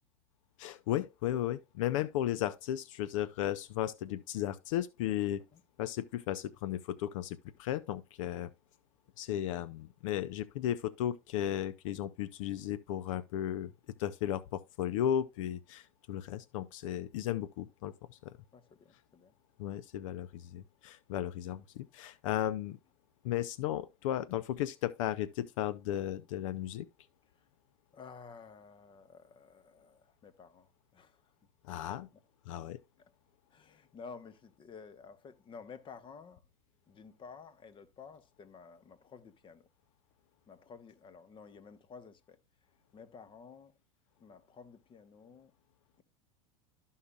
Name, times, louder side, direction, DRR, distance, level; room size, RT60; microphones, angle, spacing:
voice 1, 0.6-5.4 5.8-8.5 9.2-13.7 14.0-18.3 19.6-22.8 23.2-26.9 31.6-32.1 32.5-32.8, left 11 dB, 70° left, 0.6 m, -35 dB
voice 2, 18.5-19.4 27.3-27.5 27.9-31.3 33.0-33.1 33.5-36.4 36.9-39.7 40.5-42.4 42.9-43.8 44.2-45.5, left 5 dB, 30° left, 1.1 m, -52 dB
13.0 x 5.6 x 2.3 m
hypercardioid pair, 100°, 17 cm